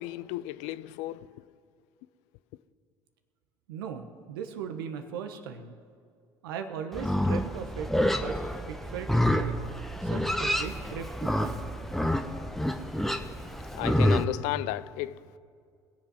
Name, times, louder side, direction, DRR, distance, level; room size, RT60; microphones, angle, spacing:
voice 1, 0.0-1.4 13.7-15.4, left 16 dB, 75° left, 0.5 m, -34 dB
voice 2, 3.7-5.7 6.4-8.4 8.7-9.6 10.0-11.7, right 7 dB, 85° right, 1.1 m, -38 dB
Livestock farm animals working animals, 6.9-14.2, equal, ahead, 0.9 m, -28 dB
21.0 x 7.4 x 6.2 m
hypercardioid pair, 75°, 11 cm